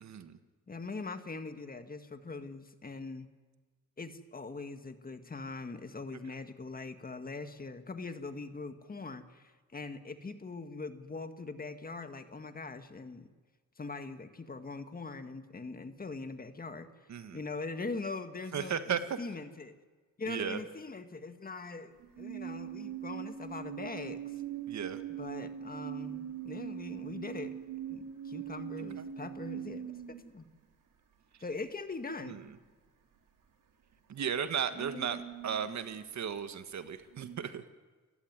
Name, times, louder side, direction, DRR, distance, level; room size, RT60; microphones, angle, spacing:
voice 1, 0.0-0.4 17.1-17.4 18.5-19.2 20.3-20.6 24.7-25.0 29.0-29.1 32.3-32.4 34.1-37.6, right 7 dB, 60° right, 10 dB, 1.6 m, -35 dB
voice 2, 0.7-3.3 4.0-13.3 13.8-16.9 17.3-19.8 20.2-24.2 25.2-27.5 27.9-30.5 31.4-32.4 34.7-35.2, left 3 dB, 30° left, 8 dB, 1.8 m, -42 dB
sound 1, 22.0-30.6 33.9-34.0 34.5-36.1 36.4-37.4, right 10 dB, 80° right, 3.5 m, -42 dB
29.0 x 15.5 x 9.6 m, 1.4 s
cardioid pair, 110°, 32 cm